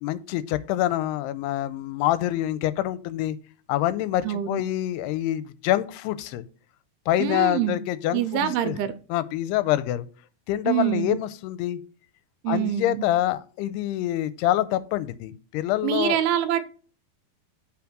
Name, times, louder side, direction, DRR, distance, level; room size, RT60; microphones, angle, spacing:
voice 1, 0.0-3.4 3.7-6.4 7.1-8.8 9.1-10.1 10.5-11.8 12.5-16.2, left 14 dB, 90° left, 15 dB, 2.7 m, -26 dB
voice 2, 4.2-4.6 7.2-7.8 8.1-8.9 10.7-11.2 12.4-13.1 15.8-16.6, right 11 dB, 85° right, 11 dB, 2.5 m, -25 dB
7.1 x 5.0 x 6.0 m, 0.38 s
omnidirectional pair, 4.6 m